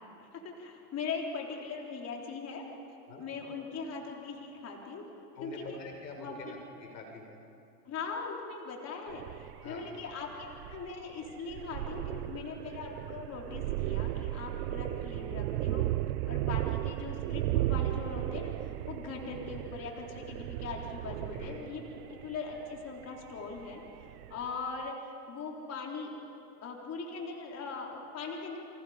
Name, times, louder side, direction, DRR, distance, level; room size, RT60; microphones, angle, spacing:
voice 1, 0.2-2.6 3.2-5.0 5.4-5.8 6.2-6.5 7.9-15.9 16.3-26.1 26.6-28.7, left 4 dB, 30° left, 0 dB, 4.2 m, -40 dB
voice 2, 5.4-7.4 9.6-9.9 21.3-21.6, left 2 dB, 85° left, 2 dB, 5.8 m, -45 dB
sound 1, 9.1-24.5, right 15 dB, 65° right, 0.9 m, -35 dB
30.0 x 27.0 x 5.2 m, 2.7 s
hypercardioid pair, 105°, 49 cm